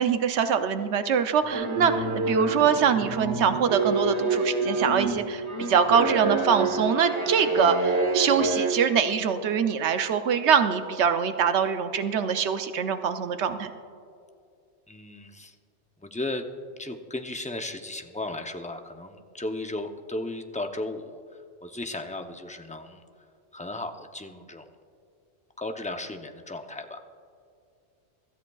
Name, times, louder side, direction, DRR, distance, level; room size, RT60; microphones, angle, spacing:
voice 1, 0.0-13.7, right 7 dB, 80° right, 9 dB, 0.9 m, -24 dB
sound 1, 1.5-8.7, right 3 dB, 30° right, 1.0 m, -27 dB
voice 2, 14.9-15.6 16.0-16.5 16.8-21.2 21.6-23.0 23.5-24.6 25.6-27.0, left 2 dB, 10° left, 5 dB, 0.4 m, -35 dB
24.0 x 13.5 x 2.3 m, 2.4 s
omnidirectional pair, 1.1 m